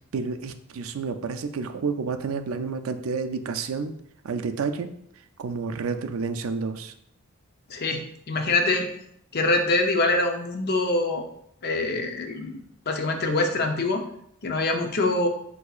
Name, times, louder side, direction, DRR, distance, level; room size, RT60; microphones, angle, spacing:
voice 1, 0.1-3.9 4.2-4.9 5.4-6.9, right 5 dB, 70° right, 9 dB, 0.4 m, -30 dB
voice 2, 7.7-8.9 9.3-11.2 11.6-14.0 14.4-15.3, left 2 dB, 50° left, 4 dB, 0.6 m, -24 dB
8.0 x 2.8 x 2.4 m, 0.72 s
head